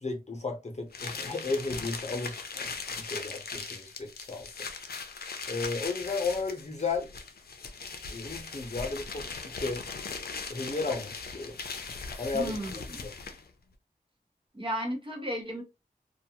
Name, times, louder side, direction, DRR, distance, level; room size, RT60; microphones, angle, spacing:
voice 1, 0.0-4.5 5.5-7.1 8.1-9.8 10.5-11.6 12.2-12.5 13.0-13.1, left 3 dB, 45° left, 0.8 m, -34 dB
sound 1, 0.9-13.5, left 4 dB, 85° left, 0.5 m, -39 dB
voice 2, 12.3-13.0 14.5-15.6, equal, 35° right, 0.9 m, -34 dB
2.5 x 2.3 x 2.8 m
wide cardioid pair, 50°, 16 cm